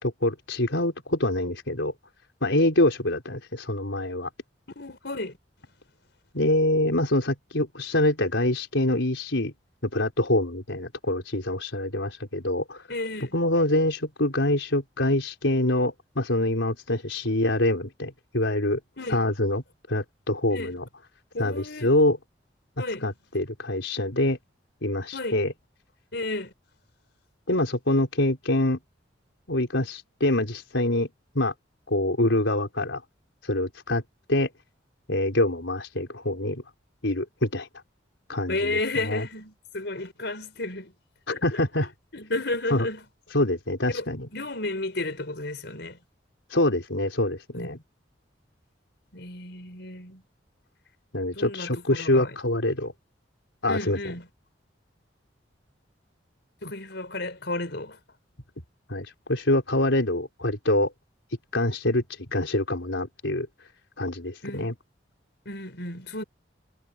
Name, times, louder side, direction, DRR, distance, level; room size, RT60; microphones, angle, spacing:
voice 1, 0.0-1.9 2.4-4.3 6.3-9.5 9.8-12.9 13.3-18.8 19.1-19.6 19.9-20.8 21.4-22.2 23.0-24.4 24.8-25.5 27.5-28.8 29.5-31.1 31.3-31.5 31.9-33.0 33.4-34.0 34.3-34.5 35.1-36.6 37.0-37.7 38.3-38.8 39.0-39.3 41.3-41.9 42.7-42.9 43.3-44.3 46.5-47.8 51.1-52.9 53.6-54.0 58.9-60.9 61.5-63.5 64.0-64.7, left 1 dB, 85° left, 4.4 m, -25 dB
voice 2, 4.8-5.4 12.9-13.4 19.0-19.3 20.5-20.7 21.3-21.9 22.8-23.1 25.1-25.4 26.1-26.5 38.5-40.9 41.3-41.7 42.1-43.1 43.9-44.1 44.3-46.0 47.6-47.8 49.1-50.2 51.3-52.4 53.7-54.3 56.6-58.0 64.4-64.7 65.5-66.2, left 2 dB, 65° left, 5.6 m, -32 dB
head